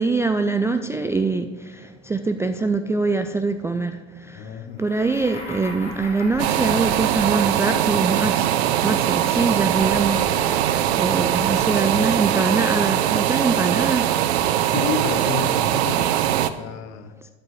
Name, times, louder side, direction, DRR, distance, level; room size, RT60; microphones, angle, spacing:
voice 1, 0.0-8.5 8.8-14.2 17.2-17.3, right 3 dB, 10° right, 6 dB, 0.3 m, -24 dB
voice 2, 4.3-4.8 14.7-17.1, left 8 dB, 55° left, 10 dB, 1.0 m, -31 dB
sound 1, 4.8-8.0 9.1-12.3, left 2 dB, 25° left, 3.1 m, -40 dB
sound 2, 6.4-16.5, right 11 dB, 75° right, 0.6 m, -21 dB
12.5 x 8.8 x 3.2 m, 1.3 s
hypercardioid pair, 85°, 32 cm